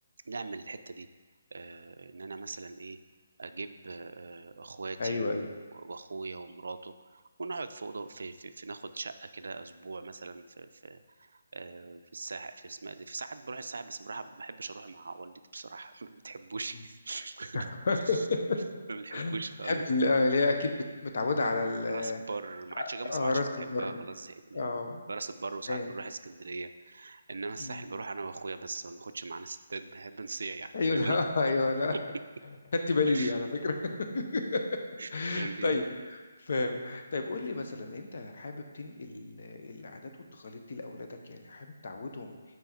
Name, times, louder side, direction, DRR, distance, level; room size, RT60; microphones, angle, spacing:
voice 1, 0.3-1.1 1.5-3.0 3.4-5.4 5.7-18.3 18.9-19.8 21.9-24.7 25.1-31.2 31.9-32.0 33.1-33.3 35.0-35.8, right 3 dB, 70° right, 10 dB, 0.4 m, -40 dB
voice 2, 5.0-5.5 17.5-18.6 19.1-19.4 19.7-20.7 21.0-22.2 22.8-24.0 24.5-25.0 25.7-25.9 27.6-27.8 30.7-31.9 32.9-33.7 34.1-34.6 35.1-35.8 36.5-40.0 40.3-42.3, left 3 dB, 60° left, 4 dB, 0.7 m, -30 dB
5.5 x 4.5 x 4.4 m, 1.3 s
figure-of-eight pair, 150°, 0 cm